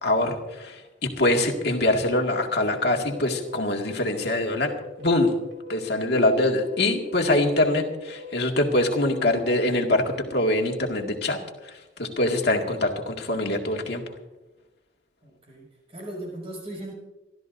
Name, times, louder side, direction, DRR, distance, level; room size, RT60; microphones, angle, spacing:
voice 1, 0.0-4.7 5.0-5.3 5.7-14.0, left 1 dB, 60° left, 2 dB, 2.1 m, -24 dB
sound 1, 1.4-8.4, left 3 dB, 60° right, 2.2 m, -43 dB
voice 2, 15.2-16.9, right 1 dB, 30° right, -1 dB, 6.4 m, -38 dB
28.5 x 13.5 x 2.6 m, 1.1 s
head